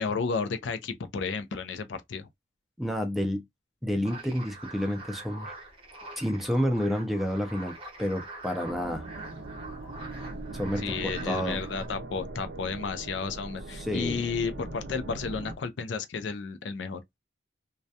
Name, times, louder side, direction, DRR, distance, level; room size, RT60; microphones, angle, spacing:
voice 1, 0.0-2.3 10.8-17.0, left 5 dB, 80° left, 0.4 m, -32 dB
voice 2, 2.8-3.4 3.8-5.5 6.2-7.7 8.0-9.1 10.5-11.6 13.8-14.3, equal, ahead, 0.4 m, -29 dB
sound 1, 4.0-11.9, right 2 dB, 30° right, 0.7 m, -44 dB
sound 2, 8.6-15.5, right 2 dB, 60° right, 0.4 m, -40 dB
2.3 x 2.1 x 2.7 m
head